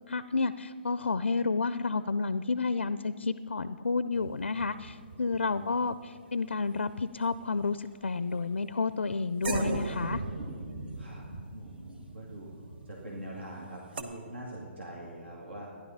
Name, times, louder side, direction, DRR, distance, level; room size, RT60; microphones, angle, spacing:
voice 1, 0.1-10.2, left 4 dB, 80° left, 14 dB, 0.4 m, -30 dB
sound 1, 4.1-7.0 7.2-7.8 8.5-8.6 9.4-14.0, right 2 dB, 60° right, 1.2 m, -38 dB
voice 2, 5.1-5.8 11.0-11.2 11.5-12.5 12.8-15.7, right 1 dB, 75° right, -3 dB, 2.2 m, -44 dB
13.0 x 10.5 x 5.6 m, 2.2 s
figure-of-eight pair, 140°, 6 cm